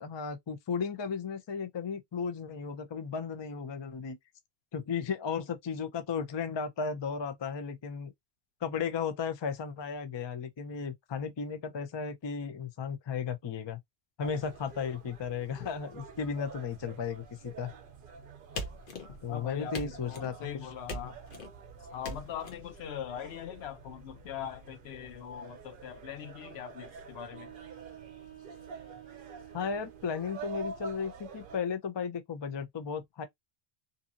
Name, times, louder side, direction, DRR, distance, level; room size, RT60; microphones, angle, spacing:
voice 1, 0.0-4.2 4.7-8.1 8.6-13.8 14.2-17.7 19.2-20.3 29.5-33.3, left 6 dB, 40° left, 0.4 m, -35 dB
sound 1, 14.2-31.6, right 5 dB, 60° right, 0.7 m, -48 dB
sound 2, 18.6-19.3 19.7-20.4 20.9-21.5 22.0-22.5, left 1 dB, 55° left, 1.0 m, -40 dB
voice 2, 19.3-21.2 21.9-27.5, left 9 dB, 80° left, 0.9 m, -41 dB
sound 3, 27.2-30.2, right 12 dB, 10° right, 1.4 m, -51 dB
2.7 x 2.6 x 2.4 m
omnidirectional pair, 1.1 m